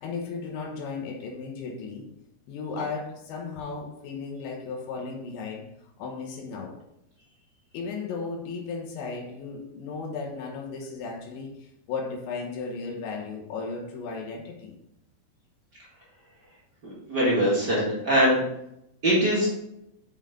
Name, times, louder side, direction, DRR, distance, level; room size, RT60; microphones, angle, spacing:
voice 1, 0.0-2.1 2.5-5.7 6.0-6.8 7.7-14.8, left 4 dB, 85° left, 2 dB, 3.4 m, -35 dB
voice 2, 16.8-18.4 19.0-19.5, equal, 40° right, -8 dB, 1.5 m, -22 dB
7.1 x 5.6 x 3.7 m, 0.83 s
omnidirectional pair, 5.0 m